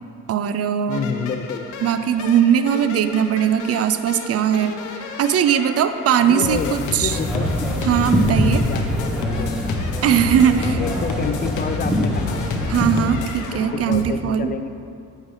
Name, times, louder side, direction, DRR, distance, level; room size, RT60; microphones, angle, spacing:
voice 1, 0.3-1.1 1.8-4.8 5.2-7.2 7.8-8.6 10.0-10.8 12.7-14.5, right 9 dB, 55° right, 11 dB, 0.4 m, -19 dB
sound 1, 0.9-14.0, left 3 dB, 80° left, 0.7 m, -31 dB
voice 2, 0.9-1.7 6.2-7.7 8.5-9.8 10.5-12.4 13.0-14.7, left 6 dB, 30° left, 9 dB, 0.3 m, -29 dB
sound 2, 7.1-13.1, left 1 dB, ahead, 1.0 m, -24 dB
8.7 x 5.5 x 3.2 m, 2.5 s
cardioid pair, 90°, 30 cm